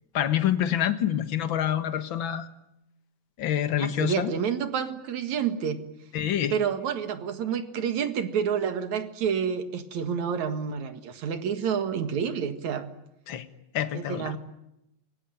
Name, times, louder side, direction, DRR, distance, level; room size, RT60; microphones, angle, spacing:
voice 1, 0.1-2.5 3.4-4.3 6.1-6.5 13.3-13.5 13.7-14.3, left 10 dB, 55° left, 10 dB, 1.5 m, -26 dB
voice 2, 3.8-5.8 6.5-12.9 13.9-14.4, right 7 dB, 60° right, 9 dB, 2.9 m, -29 dB
27.0 x 23.0 x 9.2 m, 0.85 s
omnidirectional pair, 4.0 m